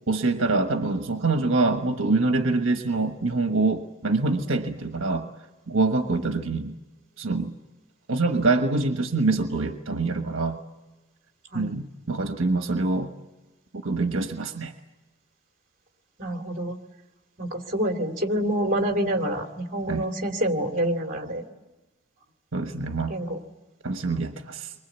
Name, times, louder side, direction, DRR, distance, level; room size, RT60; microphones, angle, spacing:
voice 1, 0.1-5.3 5.7-6.8 7.2-7.5 8.1-10.6 11.5-13.1 13.8-14.7 19.9-20.1 22.5-23.2 23.8-24.7, right 3 dB, 70° right, 5 dB, 1.4 m, -25 dB
voice 2, 16.2-16.8 17.4-21.4 23.1-23.4 24.1-24.2, right 1 dB, 40° right, 4 dB, 2.9 m, -27 dB
30.0 x 24.0 x 8.2 m, 1.1 s
head